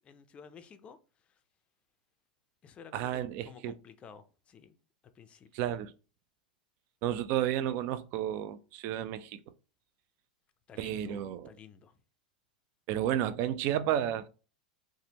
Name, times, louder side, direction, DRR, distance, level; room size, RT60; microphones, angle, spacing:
voice 1, 0.0-1.0 1.3-1.4 2.6-4.8 5.1-5.5 10.7-12.0, left 6 dB, 25° left, 0.4 m, -52 dB
voice 2, 2.9-3.7 5.5-5.9 7.0-9.4 10.8-11.5 12.9-14.3, right 11 dB, 50° right, 0.3 m, -32 dB
3.4 x 2.1 x 2.8 m
hypercardioid pair, 105°, 4 cm